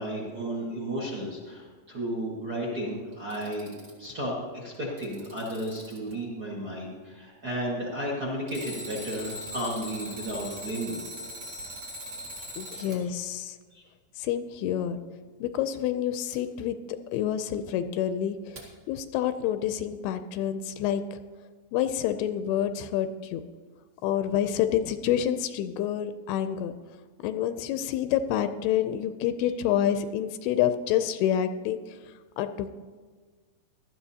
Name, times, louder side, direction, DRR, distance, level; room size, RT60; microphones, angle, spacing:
voice 1, 0.0-3.7 4.0-11.0 12.3-12.8 13.7-13.8, right 1 dB, 70° right, -4 dB, 0.9 m, -33 dB
Alarm, 3.1-4.1 4.7-6.1 8.5-13.0 16.3-16.4 18.6-18.7, equal, 40° right, 2.0 m, -40 dB
voice 2, 12.6-13.6 14.2-15.0 15.4-21.2 21.7-23.4 24.0-26.7 27.2-32.0 32.4-32.7, left 10 dB, 85° left, 10 dB, 2.5 m, -28 dB
18.5 x 12.5 x 2.8 m, 1.5 s
omnidirectional pair, 4.6 m